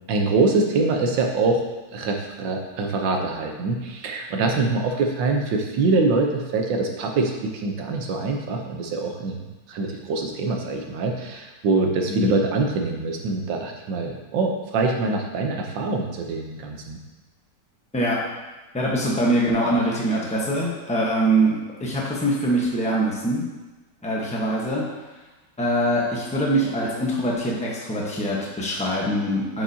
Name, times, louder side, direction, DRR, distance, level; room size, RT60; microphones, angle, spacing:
voice 1, 0.1-1.6 1.9-17.0, right 3 dB, 90° right, 2 dB, 1.5 m, -24 dB
voice 2, 18.7-23.5 24.0-24.9 25.6-29.6, right 1 dB, 5° left, -4 dB, 0.8 m, -23 dB
8.5 x 4.8 x 2.8 m, 1.2 s
omnidirectional pair, 1.9 m